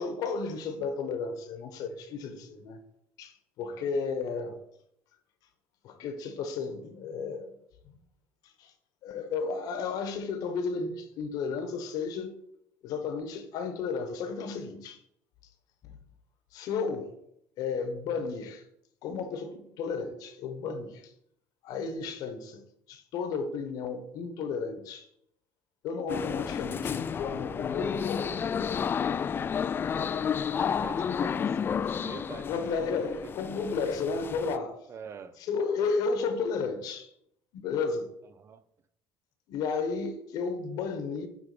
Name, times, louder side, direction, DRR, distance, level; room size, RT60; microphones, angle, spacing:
voice 1, 0.0-2.8 3.2-4.6 5.8-7.5 7.9-8.0 8.4-8.7 9.0-12.3 12.8-15.0 15.8-16.0 16.5-17.1 17.6-18.6 19.0-21.1 21.6-25.1 25.8-28.5 32.5-34.8 35.4-37.1 37.5-38.1 39.5-41.3, left 5 dB, 65° left, 1.2 m, -33 dB
sound 1, 26.1-34.6, left 7 dB, 30° left, 0.3 m, -31 dB
voice 2, 30.7-33.5 34.9-35.4 38.3-38.7, right 7 dB, 40° right, 0.6 m, -46 dB
9.5 x 3.5 x 5.0 m
supercardioid pair, 90°, 7 cm